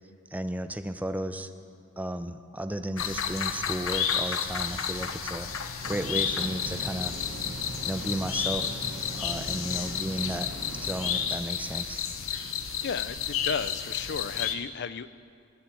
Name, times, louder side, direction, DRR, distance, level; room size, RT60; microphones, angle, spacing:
voice 1, 0.3-1.5 2.0-7.2 7.9-8.8 9.1-12.1, right 1 dB, 5° right, 9 dB, 0.5 m, -34 dB
sound 1, 3.0-14.5, left 7 dB, 75° left, 1.0 m, -31 dB
sound 2, 5.8-11.3, right 1 dB, 65° right, 1.8 m, -40 dB
voice 2, 12.8-15.1, left 6 dB, 55° left, 15 dB, 0.4 m, -34 dB
19.5 x 7.4 x 8.4 m, 2.3 s
head